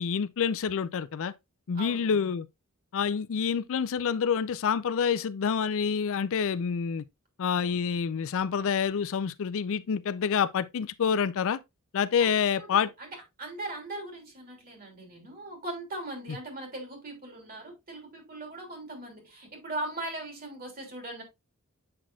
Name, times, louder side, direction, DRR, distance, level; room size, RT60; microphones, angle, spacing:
voice 1, 0.0-1.3 1.7-2.5 2.9-7.0 7.4-11.6 11.9-12.9 16.3-16.4, left 7 dB, 65° left, 0.4 m, -27 dB
voice 2, 1.7-2.1 12.4-13.1 13.4-21.2, right 2 dB, 45° right, 3.1 m, -39 dB
7.6 x 6.1 x 2.3 m
head